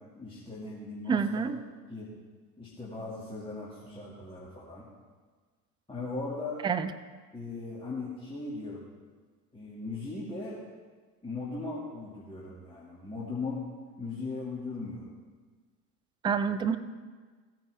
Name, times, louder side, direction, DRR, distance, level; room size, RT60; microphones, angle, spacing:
voice 1, 0.2-1.5 1.9-2.1 2.6-4.9 5.9-6.6 7.3-8.9 9.5-10.6 11.2-13.6 14.0-15.1, left 3 dB, 10° left, -6 dB, 2.2 m, -38 dB
voice 2, 1.1-1.6 6.6-6.9 16.2-16.8, right 6 dB, 10° right, 10 dB, 0.4 m, -27 dB
15.5 x 9.3 x 3.5 m, 1.4 s
figure-of-eight pair, 65°, 45 cm